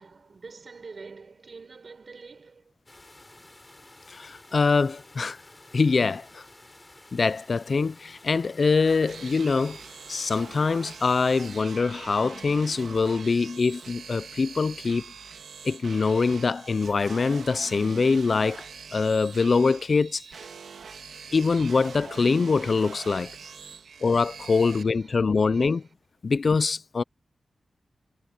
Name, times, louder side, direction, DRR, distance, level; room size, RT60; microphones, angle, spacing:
voice 1, 0.0-2.7 23.7-23.9 24.8-25.8, right 4 dB, 50° right, 6.9 m, -47 dB
sound 1, 2.9-11.6, left 2 dB, 20° left, 6.5 m, -52 dB
voice 2, 4.1-5.4 5.7-6.4 7.1-9.8 10.1-15.0 15.6-18.7 18.9-20.2 21.3-23.3 24.0-25.8 26.2-27.0, left 4 dB, 50° left, 0.5 m, -24 dB
sound 2, 8.8-24.8, right 6 dB, 85° right, 2.3 m, -44 dB
wide cardioid pair, 105°, 0 cm